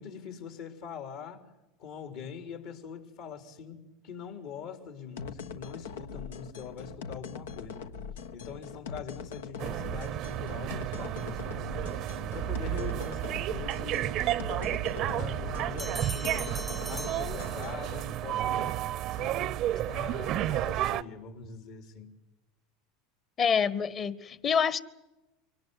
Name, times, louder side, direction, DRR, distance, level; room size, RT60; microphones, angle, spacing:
voice 1, 0.0-1.5 1.8-3.8 4.0-7.8 8.3-11.9 12.3-14.1 14.5-16.5 16.8-18.8 19.1-22.1, left 7 dB, 65° left, 3.8 m, -43 dB
sound 1, 5.2-18.0, left 6 dB, 80° left, 1.3 m, -42 dB
sound 2, 9.6-21.0, right 13 dB, 50° right, 0.8 m, -32 dB
Bell, 15.8-18.0, right 1 dB, ahead, 0.8 m, -41 dB
voice 2, 23.4-24.8, left 6 dB, 40° left, 1.6 m, -27 dB
24.5 x 18.5 x 9.6 m
hypercardioid pair, 95°, 0 cm